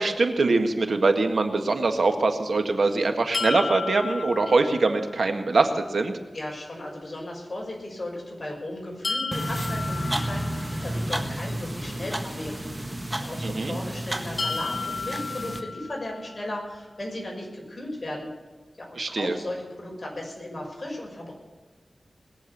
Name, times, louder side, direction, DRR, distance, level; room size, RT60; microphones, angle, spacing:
voice 1, 0.0-6.2 13.4-13.8 18.9-19.4, right 3 dB, 70° right, 6 dB, 1.7 m, -23 dB
sound 1, 3.3-5.3 9.0-11.1 14.4-16.4, left 4 dB, 70° left, 1.0 m, -33 dB
voice 2, 6.3-18.3 18.8-21.3, left 1 dB, 35° left, -2 dB, 6.3 m, -36 dB
sound 2, 9.3-15.6, right 1 dB, 15° right, 1.6 m, -31 dB
21.0 x 7.4 x 8.5 m, 1.3 s
wide cardioid pair, 90°, 0 cm